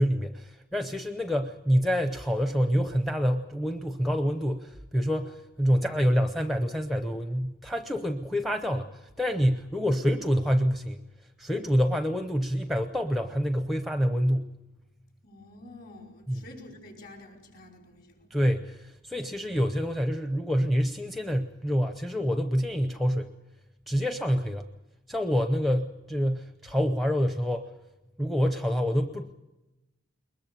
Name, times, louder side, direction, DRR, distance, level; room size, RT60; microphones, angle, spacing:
voice 1, 0.0-11.0 11.4-14.5 16.3-16.4 18.3-23.3 23.9-24.7 25.1-27.7 28.2-29.3, equal, ahead, 8 dB, 0.6 m, -27 dB
voice 2, 15.2-18.3, left 1 dB, 45° left, 1 dB, 5.0 m, -48 dB
22.0 x 20.5 x 6.8 m, 1.0 s
head